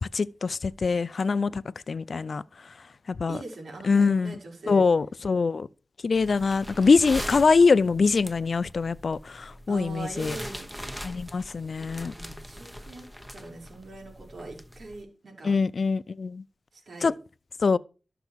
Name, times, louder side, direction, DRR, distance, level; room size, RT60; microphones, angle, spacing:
voice 1, 0.1-2.4 3.2-3.4 3.8-4.3 4.7-5.7 6.0-10.4 11.0-12.1 15.4-16.4 17.0-17.1 17.6-17.8, left 4 dB, 65° left, 0.5 m, -23 dB
voice 2, 3.3-4.8 7.0-7.2 9.7-10.7 11.8-13.1 13.3-15.5 16.7-17.1, right 2 dB, 80° right, 4.6 m, -42 dB
sound 1, 6.1-15.0, equal, 5° right, 1.2 m, -41 dB
12.5 x 6.9 x 6.2 m
wide cardioid pair, 80°, 0 cm